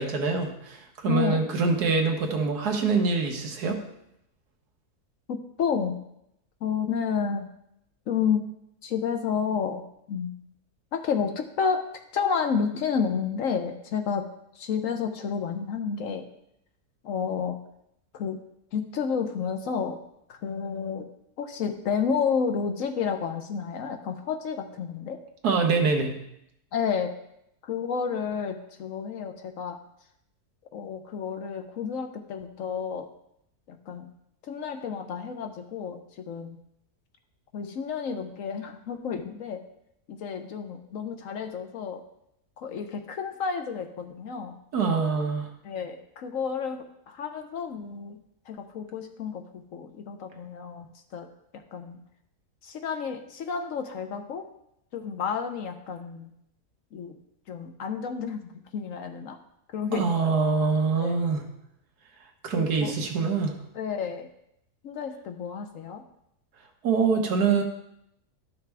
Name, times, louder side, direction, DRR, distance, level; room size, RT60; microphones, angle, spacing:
voice 1, 0.0-3.8 25.4-26.1 44.7-45.5 59.9-61.5 62.4-63.6 66.8-67.6, right 4 dB, 90° right, 3 dB, 1.6 m, -24 dB
voice 2, 1.1-1.4 5.3-6.0 6.6-7.5 8.1-8.5 8.8-10.3 10.9-11.8 12.1-14.3 14.6-16.2 17.0-17.6 18.1-18.4 18.7-20.0 20.3-21.1 21.4-25.2 26.7-27.1 27.6-29.8 30.7-33.1 33.7-34.1 34.4-36.6 37.5-39.6 40.1-42.0 42.6-44.6 45.6-48.2 48.5-50.9 51.1-51.3 51.7-52.0 52.6-54.5 54.9-56.3 56.9-57.2 57.5-59.4 59.7-60.4 61.0-61.2 62.5-62.9 63.7-64.3 64.8-66.0, left 6 dB, 65° left, 6 dB, 1.0 m, -30 dB
11.5 x 5.8 x 3.4 m, 0.79 s
omnidirectional pair, 1.6 m